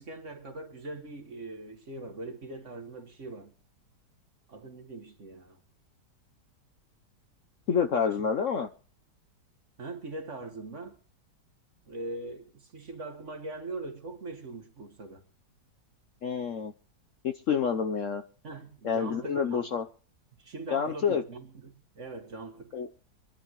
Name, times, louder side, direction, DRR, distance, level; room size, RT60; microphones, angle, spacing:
voice 1, 0.0-3.5 4.5-5.6 8.0-8.3 9.8-11.0 11.9-15.2 18.4-19.7 20.4-22.8, right 2 dB, 45° right, 1.9 m, -41 dB
voice 2, 7.7-8.7 16.2-16.7 17.2-18.2 18.8-19.9 20.7-21.2 22.7-22.9, left 7 dB, 55° left, 1.0 m, -28 dB
25.0 x 11.0 x 3.0 m
omnidirectional pair, 1.9 m